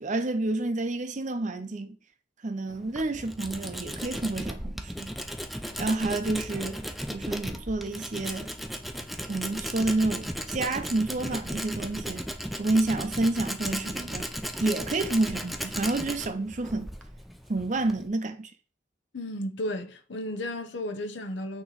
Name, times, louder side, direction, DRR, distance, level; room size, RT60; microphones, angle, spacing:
voice 1, 0.0-2.0 2.4-5.2 5.8-8.5 9.3-12.2 12.6-14.3 14.6-16.9 17.5-18.5, right 2 dB, 40° right, 0.6 m, -29 dB
Tools, 2.7-18.1, equal, ahead, 0.5 m, -36 dB
voice 2, 19.1-21.6, left 1 dB, 75° left, 0.8 m, -33 dB
8.5 x 3.0 x 4.0 m
head